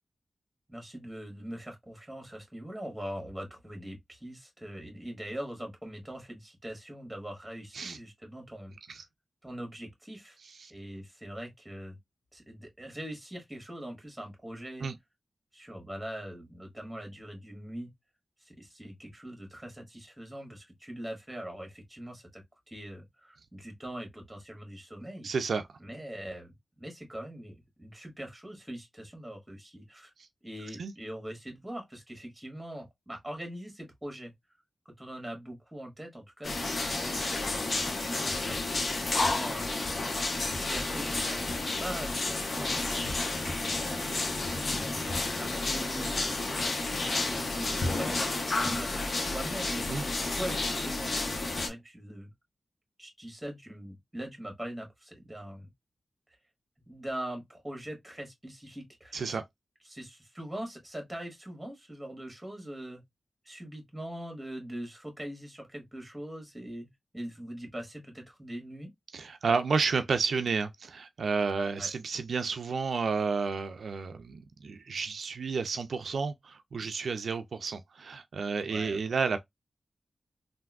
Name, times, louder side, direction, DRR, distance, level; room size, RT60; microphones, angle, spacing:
voice 1, 0.7-9.0 9.4-10.4 10.7-12.0 12.3-14.9 15.5-17.9 18.4-25.3 25.8-30.1 30.4-34.3 34.8-39.7 40.3-44.2 44.7-46.3 46.6-51.3 51.6-52.3 53.0-55.7 56.9-59.4 59.8-63.0 63.4-66.9 67.1-68.9 71.8-71.9 78.7-79.0, right 1 dB, 10° right, 1.6 m, -42 dB
voice 2, 25.2-25.7 30.8-30.9 49.9-50.0 59.1-59.4 69.1-79.4, right 5 dB, 85° right, 0.3 m, -31 dB
sound 1, 36.4-51.7, left 2 dB, 60° left, 0.8 m, -31 dB
3.5 x 2.5 x 2.3 m
wide cardioid pair, 85°, 0 cm